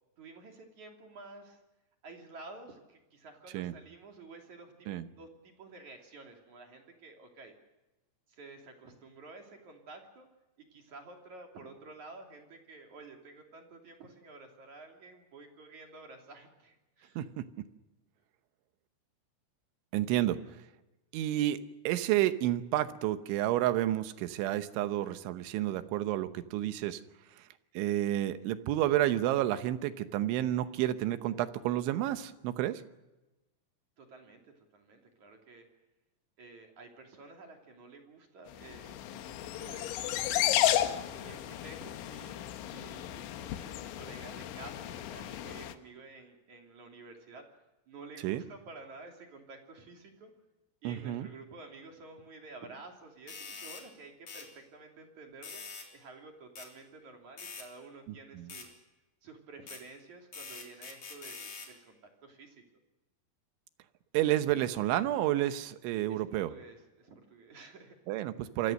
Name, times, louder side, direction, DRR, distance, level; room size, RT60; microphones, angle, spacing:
voice 1, 0.2-1.6 2.0-4.9 5.2-7.5 8.3-10.3 10.7-17.3 34.0-35.7 36.4-40.0 40.3-47.5 47.9-50.3 50.8-55.6 55.9-58.8 59.2-62.6 66.1-68.0, right 3 dB, 45° right, 2 dB, 3.6 m, -51 dB
voice 2, 17.2-17.7 19.9-20.4 21.1-21.6 21.8-27.0 27.7-32.8 48.2-48.4 50.8-51.3 58.4-58.5 64.1-66.5 68.1-68.7, right 13 dB, 75° right, 11 dB, 3.3 m, -30 dB
sound 1, 38.6-45.7, left 13 dB, 75° left, 3.3 m, -33 dB
sound 2, 53.3-53.8 54.3-54.5 55.4-55.9 56.6-56.7 57.4-57.7 58.5-58.7 59.7-59.8 60.3-61.7, left 5 dB, 35° left, 4.4 m, -44 dB
28.0 x 24.0 x 6.5 m, 1.0 s
omnidirectional pair, 5.7 m